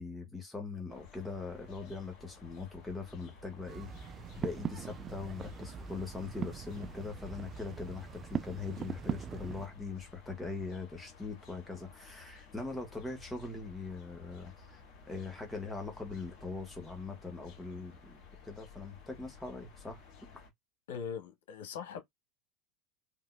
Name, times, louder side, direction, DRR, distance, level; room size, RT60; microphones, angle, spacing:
voice 1, 0.0-3.9 4.3-14.8 15.1-20.0, left 4 dB, 10° left, 1.4 m, -41 dB
sound 1, 0.9-20.5, left 5 dB, 55° left, 2.2 m, -55 dB
sound 2, 3.6-9.7, right 7 dB, 35° right, 0.4 m, -41 dB
voice 2, 20.9-22.0, left 7 dB, 80° left, 1.2 m, -40 dB
3.6 x 2.8 x 2.2 m
hypercardioid pair, 95°, 0 cm